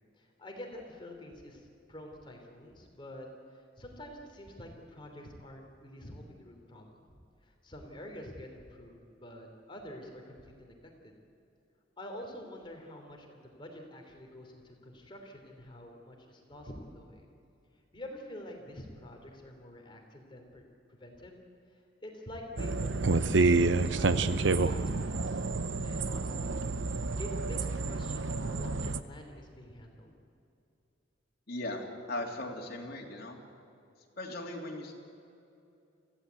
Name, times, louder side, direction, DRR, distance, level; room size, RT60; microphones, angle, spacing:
voice 1, 0.2-7.0 7.4-10.8 11.0-11.1 12.0-17.2 17.9-20.6 20.9-21.4 21.7-25.4 25.8-26.6 27.2-30.1, left 1 dB, 25° left, 2 dB, 3.1 m, -47 dB
sound 1, 22.6-29.0, right 3 dB, 65° right, 0.7 m, -29 dB
voice 2, 31.5-33.4 34.2-34.9, left 1 dB, 55° left, 0 dB, 3.1 m, -38 dB
25.5 x 16.0 x 8.3 m, 2.7 s
head